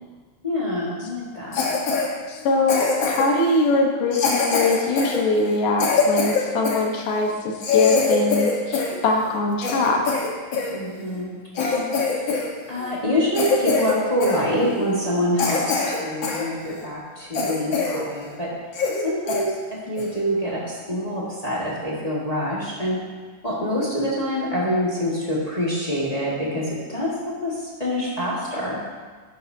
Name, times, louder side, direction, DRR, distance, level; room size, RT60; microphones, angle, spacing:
voice 1, 0.4-1.6 10.7-11.8 12.7-18.5 19.0-23.0 23.4-28.8, equal, 20° left, -6 dB, 1.1 m, -26 dB
Cough, 1.5-2.1 2.7-3.4 4.1-6.8 7.3-7.4 7.6-9.0 9.3-10.7 11.2-11.3 11.6-12.5 12.7-13.0 13.3-14.0 14.2-14.4 14.9-15.0 15.4-16.4 16.8-16.9 17.3-18.0 18.3-18.4 18.7-19.0 19.3-19.4 20.0-20.2, left 5 dB, 50° left, 1.6 m, -23 dB
voice 2, 2.3-10.0, left 2 dB, 85° left, 1 dB, 2.8 m, -22 dB
11.5 x 11.0 x 2.8 m, 1.5 s
omnidirectional pair, 3.6 m